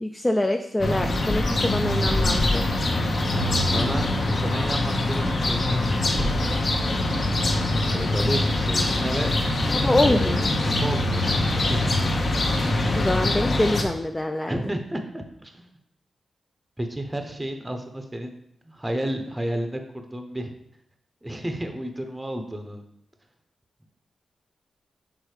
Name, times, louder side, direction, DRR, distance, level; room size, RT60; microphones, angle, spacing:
voice 1, 0.0-2.7 9.7-10.5 12.9-14.6, left 1 dB, 15° left, 5 dB, 0.4 m, -25 dB
sound 1, 0.8-13.8, left 2 dB, 50° left, 0.9 m, -23 dB
voice 2, 3.3-6.5 7.9-9.4 10.0-10.4 10.8-12.0 14.5-15.6 16.8-18.3 18.6-20.5 21.2-22.8, right 1 dB, 15° right, 5 dB, 0.7 m, -32 dB
6.4 x 3.7 x 4.8 m, 0.76 s
wide cardioid pair, 110°, 0 cm